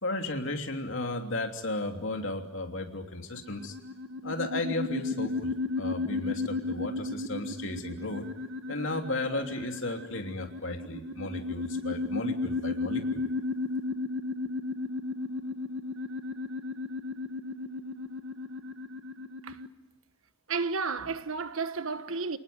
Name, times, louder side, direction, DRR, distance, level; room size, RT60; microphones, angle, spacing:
voice 1, 0.0-3.8 4.2-8.3 8.7-13.3, left 2 dB, 65° left, 3.1 m, -34 dB
sound 1, 3.3-19.7, left 3 dB, 65° right, 1.3 m, -34 dB
voice 2, 20.5-22.4, right 4 dB, 85° right, 1.4 m, -32 dB
29.0 x 19.0 x 9.4 m
head